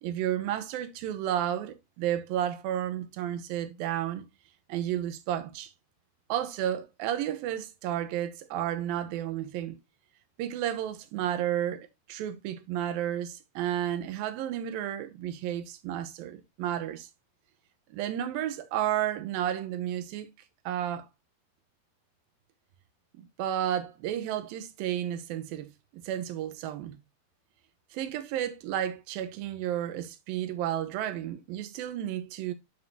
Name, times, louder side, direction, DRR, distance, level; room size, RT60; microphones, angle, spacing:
voice 1, 0.0-4.2 4.7-5.7 6.3-9.8 10.4-17.1 17.9-20.3 20.7-21.1 23.2-25.7 26.0-27.0 27.9-32.5, right 11 dB, 70° right, 2.5 m, -32 dB
9.6 x 6.3 x 2.7 m
omnidirectional pair, 4.7 m